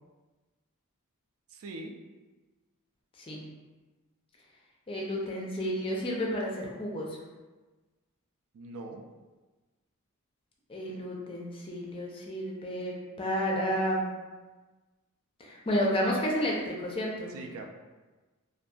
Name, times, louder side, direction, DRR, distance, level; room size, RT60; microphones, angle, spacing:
voice 1, 1.5-1.9 8.5-9.0 17.3-17.6, right 2 dB, 65° right, 3 dB, 0.3 m, -41 dB
voice 2, 4.9-7.1 10.7-14.0 15.4-17.3, equal, 25° left, -2 dB, 0.4 m, -31 dB
2.6 x 2.4 x 2.2 m, 1.2 s
head